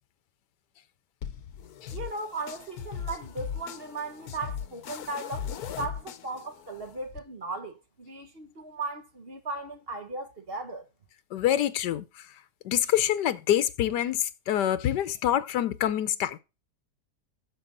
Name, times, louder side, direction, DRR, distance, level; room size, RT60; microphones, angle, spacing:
sound 1, 1.2-7.2, left 8 dB, 70° left, 1.2 m, -39 dB
voice 1, 1.9-10.8, right 3 dB, 40° right, 1.2 m, -37 dB
voice 2, 11.3-16.4, left 11 dB, 90° left, 1.3 m, -26 dB
9.2 x 6.7 x 3.8 m
omnidirectional pair, 1.8 m